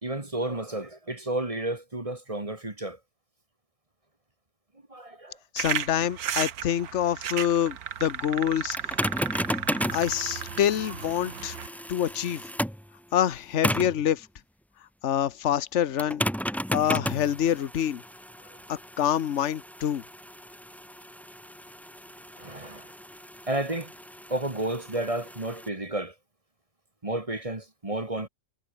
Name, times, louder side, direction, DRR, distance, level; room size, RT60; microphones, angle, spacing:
voice 1, 0.0-3.0 4.9-5.4 22.4-22.9 23.5-23.9 24.3-26.1 27.0-28.3, right 1 dB, 20° right, 2.0 m, -32 dB
voice 2, 5.5-8.8 9.9-11.6 11.9-12.4 13.1-14.3 15.0-16.2 16.7-18.0 18.7-20.0, left 10 dB, 50° left, 1.2 m, -26 dB
sound 1, 5.6-11.7, right 9 dB, 65° right, 1.5 m, -34 dB
sound 2, 8.7-12.9 13.6-14.0 16.0-25.7, equal, ahead, 2.0 m, -34 dB
omnidirectional pair, 1.8 m